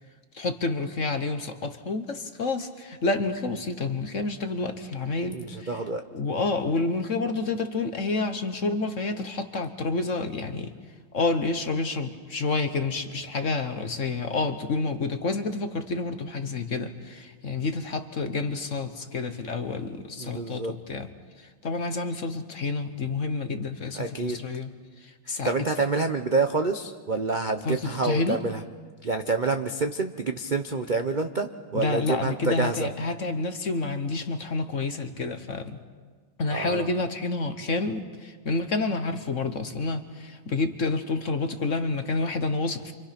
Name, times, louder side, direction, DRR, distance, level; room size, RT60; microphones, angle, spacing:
voice 1, 0.3-5.8 6.1-10.7 11.1-21.1 21.6-24.7 25.0-25.5 27.6-28.4 31.7-35.8 36.4-42.9, left 3 dB, 45° left, 8 dB, 1.2 m, -29 dB
voice 2, 5.3-6.0 20.2-20.7 23.9-24.4 25.4-28.6 29.0-32.9 36.5-36.9, right 3 dB, 70° right, 6 dB, 0.4 m, -27 dB
28.5 x 26.0 x 5.9 m, 1.5 s
omnidirectional pair, 2.3 m